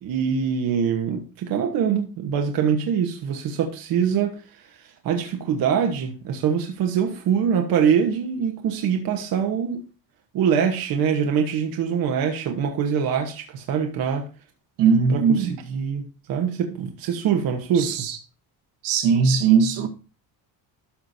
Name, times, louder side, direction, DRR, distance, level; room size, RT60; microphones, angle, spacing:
voice 1, 0.0-9.8 10.3-14.3 15.1-18.1, right 7 dB, 55° right, 1.1 m, -24 dB
voice 2, 14.8-15.5 17.7-18.2 18.8-19.9, right 6 dB, 75° right, 1.6 m, -19 dB
12.5 x 5.9 x 2.7 m
cardioid pair, 175°, 42 cm